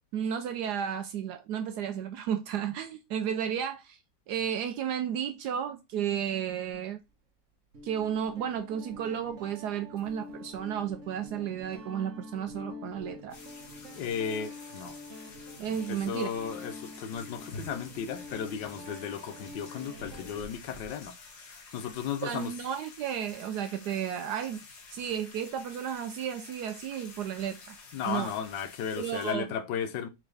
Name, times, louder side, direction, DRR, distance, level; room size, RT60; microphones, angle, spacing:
voice 1, 0.1-4.0 4.3-7.0 7.8-13.4 15.6-16.3 22.2-27.8 28.0-28.3 28.9-29.5, right 9 dB, 75° right, 1.1 m, -33 dB
Guitar, 6.7-6.8 7.7-20.4, left 2 dB, 50° right, 1.1 m, -46 dB
sound 1, 13.3-29.3, left 3 dB, 65° left, 1.7 m, -49 dB
voice 2, 13.9-15.0 15.9-21.1 21.5-22.5 27.9-30.1, left 7 dB, 85° left, 1.4 m, -35 dB
4.4 x 3.8 x 3.2 m
omnidirectional pair, 1.9 m